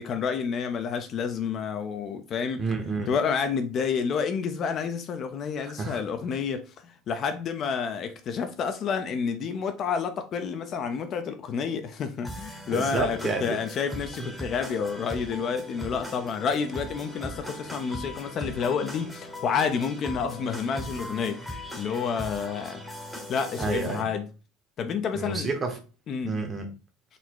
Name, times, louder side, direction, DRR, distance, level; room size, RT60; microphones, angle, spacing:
voice 1, 0.0-2.6 3.1-22.8 23.3-24.3 24.8-25.5 26.1-26.4, left 6 dB, 40° left, 0.5 m, -29 dB
voice 2, 2.6-3.1 5.6-6.0 12.7-13.6 23.6-24.1 25.1-25.8 26.2-26.7, right 4 dB, 25° right, 1.0 m, -30 dB
sound 1, 12.2-24.0, equal, ahead, 0.9 m, -39 dB
3.9 x 2.1 x 4.5 m
supercardioid pair, 130°, 0 cm